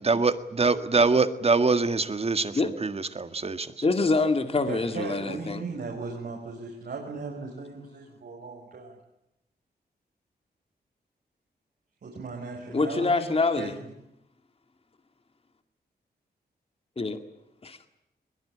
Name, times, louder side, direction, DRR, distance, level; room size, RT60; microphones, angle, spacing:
voice 1, 0.0-3.7, right 4 dB, 35° right, 11 dB, 1.8 m, -24 dB
voice 2, 3.8-5.6 12.7-13.7 17.0-17.2 17.6-17.9, left 3 dB, 35° left, 8 dB, 2.0 m, -25 dB
voice 3, 4.7-9.0 12.0-13.3 13.6-13.9, right 4 dB, 70° right, -1 dB, 5.6 m, -37 dB
22.0 x 21.0 x 9.9 m, 0.84 s
wide cardioid pair, 95°, 17 cm